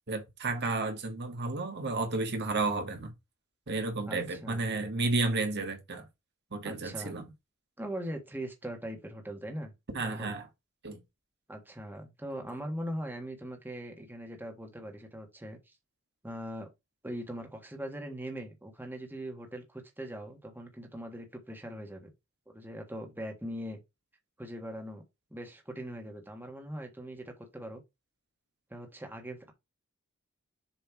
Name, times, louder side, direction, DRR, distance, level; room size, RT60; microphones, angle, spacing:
voice 1, 0.1-3.1 3.7-6.1 6.5-7.2 9.9-10.5 10.8-11.0, right 3 dB, 55° right, 1.5 m, -32 dB
voice 2, 4.1-4.7 6.6-7.1 7.8-9.7 10.0-10.3 11.5-15.6 16.2-16.7 17.0-22.1 22.5-23.8 24.4-25.0 25.3-27.8 28.7-29.5, equal, 10° right, 1.4 m, -41 dB
7.1 x 3.3 x 4.5 m
head